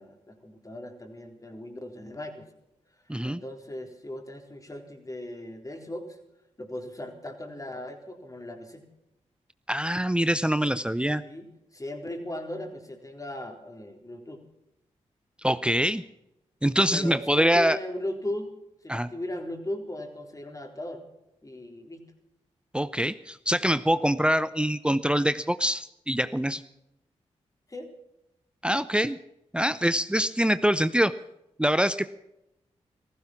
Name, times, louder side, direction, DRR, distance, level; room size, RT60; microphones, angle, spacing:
voice 1, 0.0-2.5 3.2-6.2 6.6-8.8 11.2-14.4 16.9-18.5 18.8-21.0 21.4-22.0 27.7-27.9, left 1 dB, 25° left, 4 dB, 3.9 m, -37 dB
voice 2, 3.1-3.4 9.7-11.2 15.4-16.0 16.6-17.8 18.9-19.1 22.7-26.6 28.6-29.2 29.5-31.1 31.6-32.0, equal, 10° right, 14 dB, 0.7 m, -24 dB
16.0 x 15.0 x 6.0 m, 0.88 s
supercardioid pair, 45°, 13 cm